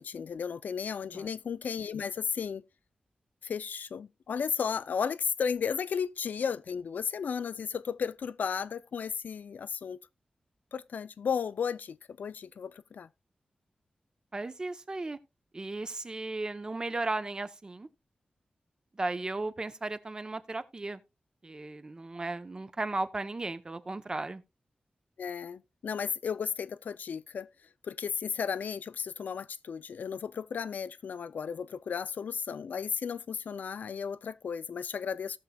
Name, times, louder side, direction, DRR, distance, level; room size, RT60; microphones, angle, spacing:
voice 1, 0.0-2.6 3.4-10.0 10.7-13.1 25.2-27.5 27.8-35.4, left 6 dB, 85° left, 0.4 m, -34 dB
voice 2, 14.3-15.2 15.5-17.9 19.0-21.0 21.4-24.4, right 2 dB, 30° right, 0.7 m, -35 dB
18.0 x 6.3 x 2.3 m
wide cardioid pair, 140°, 3 cm